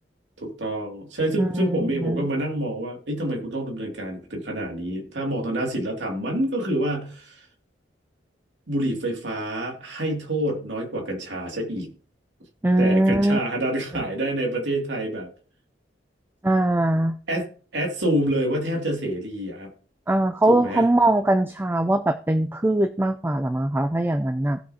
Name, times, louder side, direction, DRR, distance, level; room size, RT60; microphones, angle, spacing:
voice 1, 0.4-7.4 8.7-11.9 12.8-15.3 17.3-17.5 17.7-19.7 20.5-20.9, right 1 dB, 90° right, 1 dB, 2.4 m, -27 dB
voice 2, 1.4-2.3 12.6-13.4 16.4-17.2 20.1-24.6, right 1 dB, 10° right, 10 dB, 0.4 m, -21 dB
17.0 x 6.3 x 2.8 m, 0.41 s
head